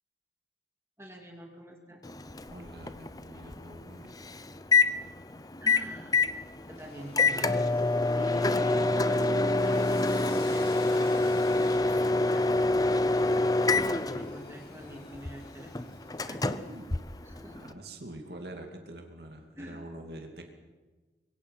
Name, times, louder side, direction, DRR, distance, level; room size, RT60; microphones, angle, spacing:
voice 1, 1.0-2.0 5.6-6.3 6.7-7.8 8.1-9.9 10.3-11.3 11.8-16.0 16.2-16.4 17.2-17.8 19.6-19.8, equal, 15° right, 1 dB, 2.5 m, -47 dB
Microwave oven, 2.0-17.7, left 3 dB, 20° left, 0.8 m, -27 dB
voice 2, 2.5-4.1 16.4-16.9 17.6-20.5, right 1 dB, 65° right, 3 dB, 2.6 m, -45 dB
Sawing, 6.7-17.0, left 3 dB, 60° left, 6.9 m, -52 dB
26.0 x 23.0 x 5.8 m, 1.3 s
head